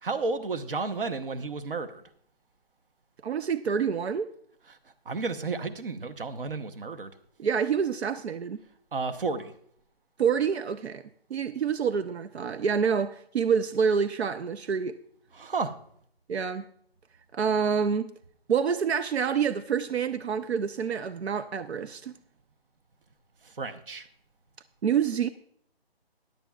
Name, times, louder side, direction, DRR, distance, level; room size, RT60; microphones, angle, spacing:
voice 1, 0.0-2.0 4.7-4.8 5.1-7.1 8.9-9.5 15.3-15.7 23.4-24.1, right 4 dB, 60° right, 1.0 m, -32 dB
voice 2, 3.2-4.3 7.4-8.6 10.2-14.9 16.3-16.6 17.3-18.1 18.5-22.1 24.8-25.3, right 6 dB, 90° right, 0.6 m, -27 dB
15.5 x 10.5 x 2.4 m
hypercardioid pair, 170°, 31 cm